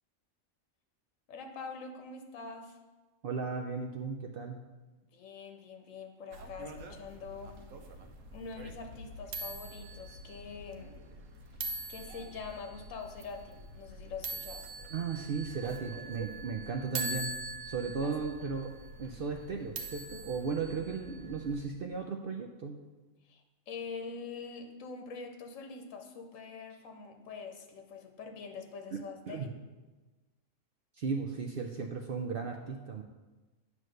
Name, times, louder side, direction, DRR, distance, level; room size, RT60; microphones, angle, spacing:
voice 1, 1.3-2.8 5.1-7.6 8.3-11.0 11.9-14.7 18.0-18.2 23.3-29.5, left 5 dB, 75° left, 5 dB, 1.2 m, -44 dB
voice 2, 3.2-4.6 14.9-17.3 17.7-18.7 19.0-22.8 28.9-29.0 29.3-29.5 31.0-33.0, right 5 dB, 60° right, 3 dB, 0.6 m, -36 dB
sound 1, 6.3-21.6, right 2 dB, 80° right, 1.1 m, -43 dB
9.3 x 3.1 x 6.4 m, 1.2 s
omnidirectional pair, 1.3 m